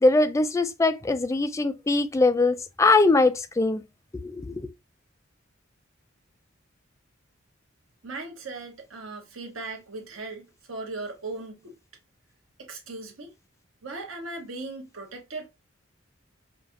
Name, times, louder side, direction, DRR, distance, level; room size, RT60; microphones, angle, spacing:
voice 1, 0.0-3.8 4.1-4.7, left 2 dB, 15° left, 0.3 m, -22 dB
voice 2, 8.0-11.7 12.6-13.3 13.8-15.5, right 3 dB, 90° right, 1.2 m, -38 dB
5.0 x 2.4 x 2.7 m
head